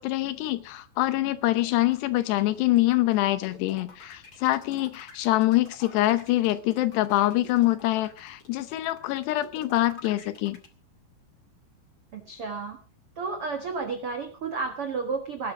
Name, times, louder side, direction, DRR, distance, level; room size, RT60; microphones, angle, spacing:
voice 1, 0.0-10.6, left 16 dB, 75° left, 14 dB, 2.8 m, -25 dB
sound 1, 1.6-10.7, left 4 dB, 40° left, 1.4 m, -49 dB
voice 2, 12.1-12.8 13.2-15.5, right 4 dB, 90° right, 7 dB, 1.2 m, -32 dB
18.5 x 11.5 x 4.9 m, 0.36 s
omnidirectional pair, 5.2 m